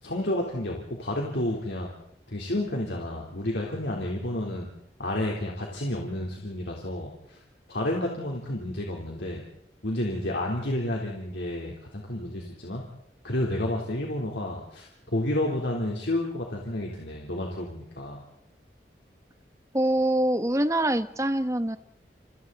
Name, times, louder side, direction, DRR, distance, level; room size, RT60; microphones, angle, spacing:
voice 1, 0.0-1.9 2.3-4.7 5.0-7.4 7.7-9.4 9.8-12.8 13.2-18.2, left 1 dB, 85° left, -1 dB, 3.7 m, -30 dB
voice 2, 19.7-21.8, right 1 dB, 15° right, 10 dB, 1.1 m, -24 dB
30.0 x 29.0 x 4.2 m, 0.76 s
head